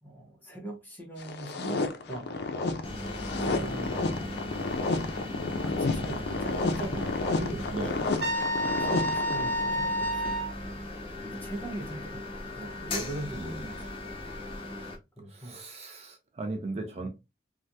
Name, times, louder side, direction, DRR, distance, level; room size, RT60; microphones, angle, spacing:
voice 1, 0.0-1.8 2.1-2.3 3.4-4.5 5.4-7.7 8.7-10.4 11.2-12.2 12.5-13.6 14.8-14.9 15.2-15.6, right 1 dB, 10° left, 1.0 m, -40 dB
sound 1, 1.2-9.8, left 3 dB, 65° left, 0.4 m, -31 dB
sound 2, 2.8-15.0, left 1 dB, 30° left, 0.7 m, -38 dB
voice 2, 7.7-8.3 13.3-13.8 15.3-17.1, right 2 dB, 35° right, 0.5 m, -37 dB
Trumpet, 8.2-10.5, equal, 70° right, 1.1 m, -29 dB
3.3 x 2.3 x 2.6 m
head